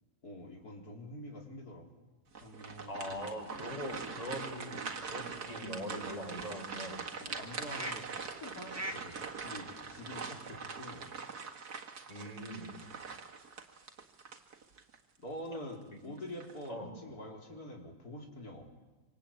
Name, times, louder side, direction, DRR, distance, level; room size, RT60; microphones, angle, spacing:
voice 1, 0.2-2.1 2.4-4.0 7.2-11.1 15.2-18.7, left 1 dB, 75° left, 1 dB, 4.8 m, -46 dB
sound 1, 2.3-15.0 15.4-15.6 16.2-16.7, right 5 dB, 90° right, 2.4 m, -43 dB
voice 2, 2.9-4.8 5.1-7.1 12.1-12.7 16.7-17.0, equal, 25° left, 0 dB, 6.2 m, -41 dB
sound 2, 4.0-10.6, right 1 dB, 10° right, 1.5 m, -49 dB
26.5 x 25.5 x 8.9 m, 1.2 s
omnidirectional pair, 1.6 m